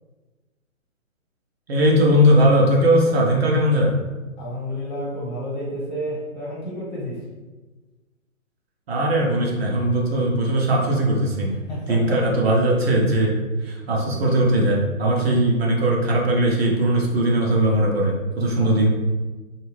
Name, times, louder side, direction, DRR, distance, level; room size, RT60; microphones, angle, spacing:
voice 1, 1.7-3.9 8.9-11.5 11.9-18.9, right 1 dB, 50° right, -2 dB, 0.6 m, -19 dB
voice 2, 4.4-7.2 11.5-12.2 18.6-18.7, equal, 35° left, -6 dB, 1.2 m, -31 dB
2.6 x 2.3 x 3.1 m, 1.2 s
hypercardioid pair, 145°, 41 cm